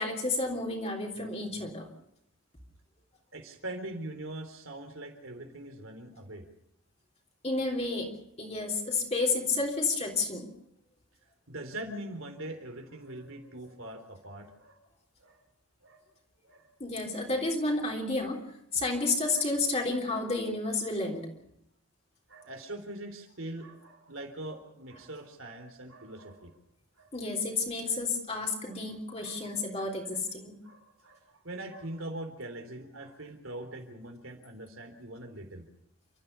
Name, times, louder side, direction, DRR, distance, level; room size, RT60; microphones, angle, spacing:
voice 1, 0.0-1.9 7.4-8.1 8.4-10.5 16.8-18.4 18.7-21.3 27.1-30.6, left 3 dB, 30° left, 0 dB, 3.6 m, -31 dB
voice 2, 3.3-6.5 11.5-14.8 15.2-15.4 15.8-16.2 16.4-16.7 17.3-17.4 19.3-19.4 22.3-26.6 27.0-27.1 28.6-28.8 29.2-29.9 30.6-35.7, right 1 dB, 65° right, 5 dB, 3.6 m, -42 dB
30.0 x 13.5 x 6.8 m, 0.75 s
head